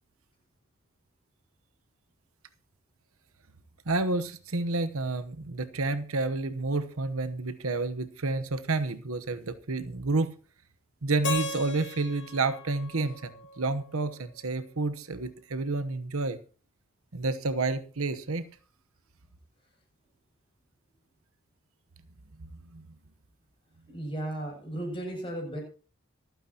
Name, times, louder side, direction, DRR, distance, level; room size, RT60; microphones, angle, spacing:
voice 1, 3.9-10.3 11.0-16.4 17.1-18.4 22.4-22.8, right 3 dB, 70° right, 10 dB, 1.0 m, -30 dB
Keyboard (musical), 11.2-14.2, left 3 dB, 55° left, 2.1 m, -37 dB
voice 2, 23.9-25.6, right 1 dB, 25° left, -1 dB, 7.7 m, -35 dB
26.5 x 9.3 x 2.9 m, 0.37 s
head